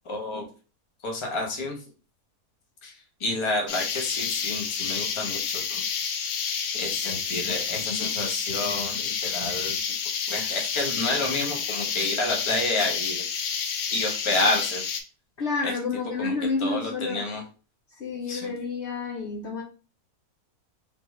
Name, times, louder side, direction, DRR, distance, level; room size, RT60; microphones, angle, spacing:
voice 1, 0.0-0.5 1.0-1.8 2.8-2.9 3.2-5.8 6.3-9.8 10.3-13.2 13.9-14.8 16.2-16.3 16.6-17.4 18.3-18.5, left 2 dB, 25° left, 0.7 m, -29 dB
sound 1, 3.7-15.0, left 7 dB, 85° left, 0.5 m, -29 dB
voice 2, 15.4-17.3 18.0-19.6, left 4 dB, 60° left, 0.8 m, -29 dB
3.6 x 2.5 x 3.1 m
omnidirectional pair, 1.6 m